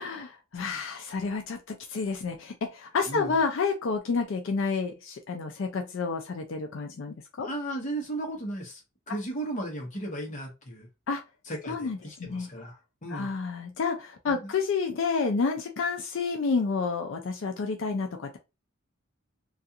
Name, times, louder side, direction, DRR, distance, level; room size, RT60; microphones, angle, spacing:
voice 1, 0.0-7.5 11.1-11.2 11.7-12.5 13.1-18.4, left 4 dB, 65° left, 0.4 m, -30 dB
voice 2, 7.4-8.8 9.1-10.9 11.5-13.3 14.3-14.5, right 1 dB, 35° left, 0.9 m, -35 dB
2.4 x 2.3 x 2.7 m
head